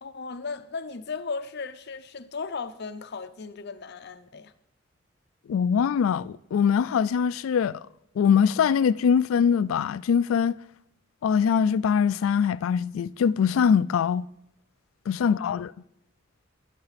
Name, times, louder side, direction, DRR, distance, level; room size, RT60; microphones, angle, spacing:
voice 1, 0.0-4.5 15.2-15.5, left 4 dB, 55° left, 0.7 m, -36 dB
voice 2, 5.5-7.8 8.2-10.6 11.2-14.3 15.1-15.7, left 7 dB, 80° left, 0.3 m, -22 dB
12.0 x 10.5 x 4.1 m
head